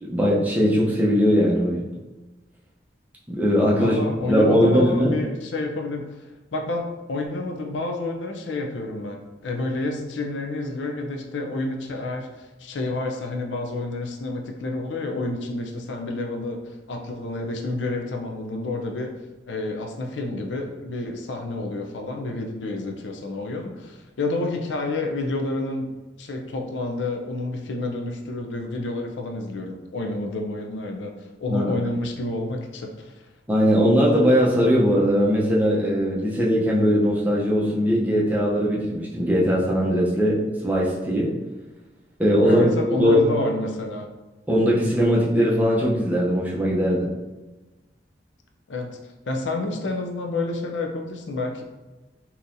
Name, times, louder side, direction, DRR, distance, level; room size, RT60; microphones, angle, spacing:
voice 1, 0.0-1.9 3.3-4.0 4.3-5.1 31.5-31.7 33.5-41.3 42.2-42.6 43.0-43.2 44.5-47.1, equal, 10° right, -5 dB, 0.6 m, -20 dB
voice 2, 3.8-19.1 19.5-33.2 42.4-44.1 48.7-49.0 49.3-51.6, left 2 dB, 85° left, 3 dB, 0.5 m, -29 dB
3.7 x 2.9 x 2.6 m, 1.1 s
head